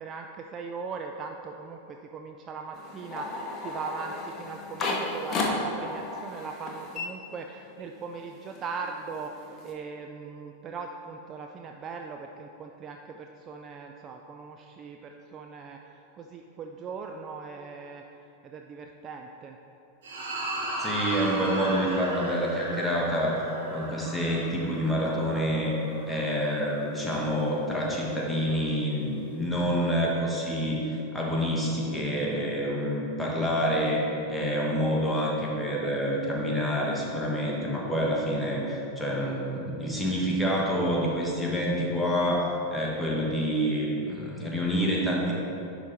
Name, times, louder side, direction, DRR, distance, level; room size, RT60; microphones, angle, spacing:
voice 1, 0.0-19.6, right 5 dB, 30° right, 3 dB, 0.3 m, -40 dB
sound 1, 2.7-7.9 8.2-9.7, left 2 dB, 30° left, 0.9 m, -34 dB
sound 2, 20.0-26.6, right 1 dB, 60° right, 1.5 m, -36 dB
voice 2, 20.8-23.4 23.7-25.8 26.1-30.8 31.1-34.0 34.3-45.3, equal, 5° left, -4 dB, 1.2 m, -27 dB
10.5 x 4.0 x 3.4 m, 2.9 s
figure-of-eight pair, 90°, 0 cm